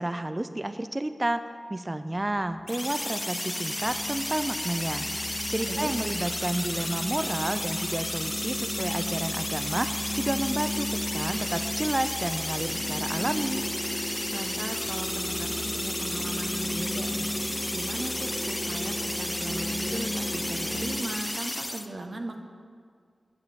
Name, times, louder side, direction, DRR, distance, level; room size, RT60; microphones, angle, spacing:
voice 1, 0.0-5.1 5.5-13.6, right 1 dB, 25° right, 10 dB, 0.5 m, -31 dB
sound 1, 2.1-21.0, equal, 5° right, 2.0 m, -36 dB
sound 2, 2.7-21.9, left 1 dB, 20° left, 0.6 m, -33 dB
voice 2, 5.6-6.0 14.3-17.3 17.7-22.4, right 2 dB, 55° right, 3 dB, 1.1 m, -37 dB
9.6 x 8.1 x 7.0 m, 2.1 s
cardioid pair, 50°, 0 cm